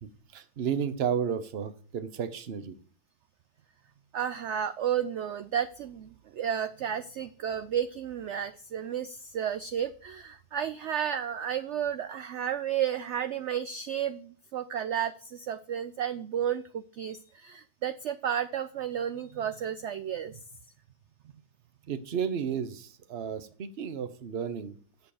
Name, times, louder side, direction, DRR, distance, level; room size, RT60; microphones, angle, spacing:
voice 1, 0.0-2.8 21.9-24.8, right 7 dB, 45° right, 11 dB, 0.9 m, -33 dB
voice 2, 4.1-20.4, right 9 dB, 80° right, 12 dB, 0.6 m, -32 dB
8.2 x 6.7 x 4.9 m, 0.42 s
omnidirectional pair, 1.7 m